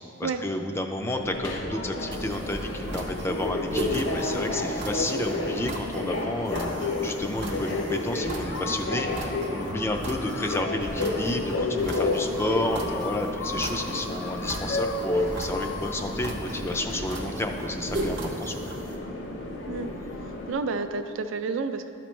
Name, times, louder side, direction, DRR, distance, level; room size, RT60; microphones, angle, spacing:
voice 1, 0.2-18.6, left 1 dB, 15° left, 5 dB, 0.3 m, -31 dB
Subway metro underground, 1.2-20.5, left 2 dB, 70° left, 0.8 m, -31 dB
sound 1, 2.1-19.0, right 1 dB, 60° right, 0.9 m, -37 dB
sound 2, 7.4-8.0 8.5-17.1, left 6 dB, 90° left, 0.4 m, -41 dB
voice 2, 20.5-21.9, right 4 dB, 75° right, 9 dB, 0.4 m, -30 dB
12.0 x 4.3 x 3.1 m, 2.8 s
head